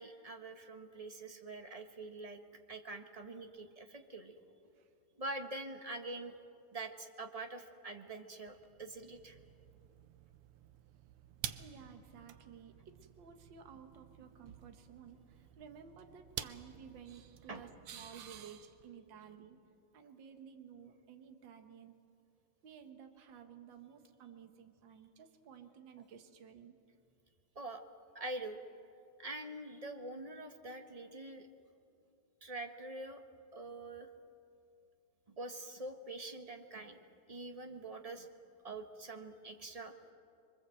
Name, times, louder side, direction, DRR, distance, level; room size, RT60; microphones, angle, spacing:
voice 1, 0.0-2.4 2.7-4.4 5.2-6.3 6.7-9.4 17.5-17.6 27.5-27.8 28.1-28.6 29.2-31.5 32.4-33.2 33.5-34.1 35.3-37.0 37.3-38.3 38.6-39.9, right 2 dB, 20° right, 5 dB, 1.0 m, -45 dB
sound 1, 8.4-18.9, right 11 dB, 85° right, 1.8 m, -51 dB
voice 2, 11.6-19.6 19.9-21.9 22.6-26.8, right 7 dB, 60° right, 6 dB, 2.0 m, -54 dB
26.0 x 23.5 x 7.8 m, 2.5 s
omnidirectional pair, 2.4 m